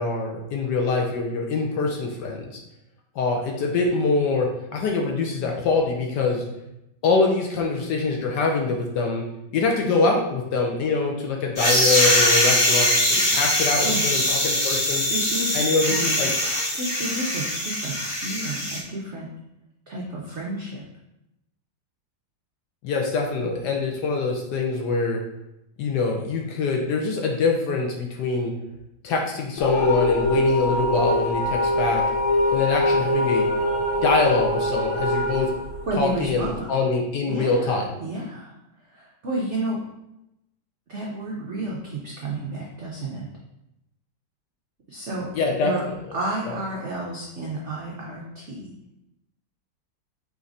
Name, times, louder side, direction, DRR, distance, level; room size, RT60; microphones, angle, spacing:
voice 1, 0.0-2.5 3.2-6.4 7.0-9.2 9.5-15.1 15.5-16.3 22.8-25.2 25.8-28.5 29.0-32.0 32.5-33.5 34.0-35.5 36.0-37.9 45.3-45.7 46.5-46.6, left 3 dB, 70° left, 1 dB, 1.1 m, -24 dB
sound 1, 11.6-18.8, left 1 dB, 35° left, 1.0 m, -22 dB
voice 2, 15.1-15.7 16.0-16.2 16.7-19.3 19.9-20.8 35.8-36.7 37.3-38.6 38.9-39.8 40.9-43.3 44.9-45.3 45.6-45.8 46.1-48.7, right 2 dB, 75° right, -3 dB, 0.6 m, -31 dB
sound 2, 29.6-36.5, left 1 dB, 90° left, 0.6 m, -23 dB
5.1 x 3.2 x 2.5 m, 0.87 s
omnidirectional pair, 2.1 m